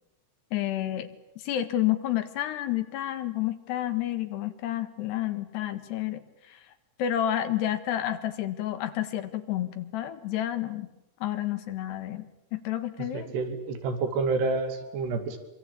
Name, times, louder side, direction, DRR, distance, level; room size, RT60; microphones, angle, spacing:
voice 1, 0.5-1.1 1.4-6.6 7.0-10.9 11.2-13.4, left 12 dB, 85° left, 10 dB, 3.8 m, -30 dB
voice 2, 13.0-15.4, right 3 dB, 85° right, 8 dB, 4.8 m, -29 dB
26.0 x 25.0 x 8.6 m, 0.88 s
omnidirectional pair, 4.7 m